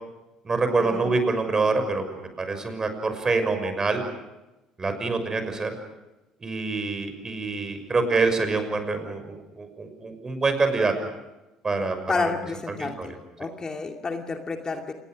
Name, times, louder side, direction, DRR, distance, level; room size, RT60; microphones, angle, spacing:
voice 1, 0.4-4.0 4.8-5.7 6.4-10.9 11.6-12.3 12.7-13.1, right 3 dB, 30° right, 7 dB, 6.2 m, -26 dB
voice 2, 12.1-13.1 13.4-14.9, left 4 dB, 30° left, 4 dB, 2.6 m, -30 dB
28.0 x 20.5 x 6.4 m, 1.0 s
hypercardioid pair, 60°, 2 cm